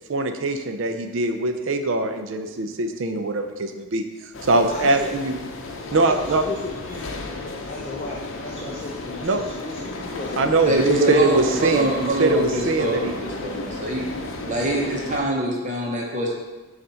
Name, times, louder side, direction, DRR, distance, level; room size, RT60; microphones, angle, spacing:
voice 1, 0.1-5.4 5.9-6.4 9.2-9.4 10.4-10.7 11.1-13.2, right 2 dB, 65° right, 6 dB, 0.5 m, -22 dB
sound 1, 4.3-15.2, left 2 dB, 70° left, 0.7 m, -34 dB
voice 2, 4.6-5.1 5.9-7.2 7.7-11.6, left 2 dB, 30° left, -4 dB, 0.5 m, -35 dB
voice 3, 10.7-14.0 14.5-16.3, right 1 dB, 35° right, -2 dB, 0.9 m, -24 dB
6.7 x 2.5 x 5.6 m, 1.2 s
head